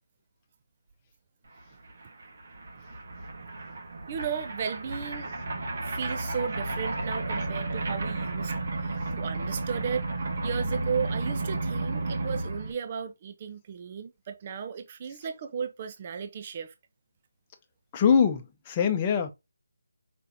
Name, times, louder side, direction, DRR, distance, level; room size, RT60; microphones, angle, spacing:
sound 1, 1.6-1.7 1.8-12.7, right 2 dB, 50° right, 1.5 m, -33 dB
voice 1, 4.1-5.3 5.8-16.7, right 7 dB, 30° right, 0.5 m, -35 dB
voice 2, 17.9-19.3, left 7 dB, 20° left, 0.8 m, -23 dB
5.1 x 3.8 x 2.7 m
figure-of-eight pair, 155°, 0 cm